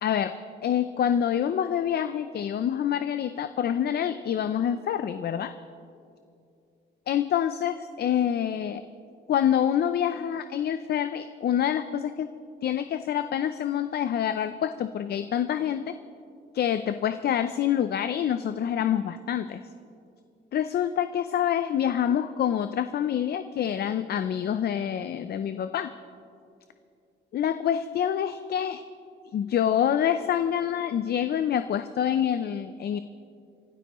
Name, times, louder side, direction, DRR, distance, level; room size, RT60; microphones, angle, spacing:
voice 1, 0.0-0.3 0.6-5.5 7.1-8.8 9.3-12.3 12.6-15.9 16.5-19.6 20.5-25.9 27.3-28.8 29.3-33.0, left 9 dB, 55° left, 11 dB, 0.5 m, -26 dB
29.5 x 12.5 x 3.1 m, 2.5 s
cardioid pair, 90°, 20 cm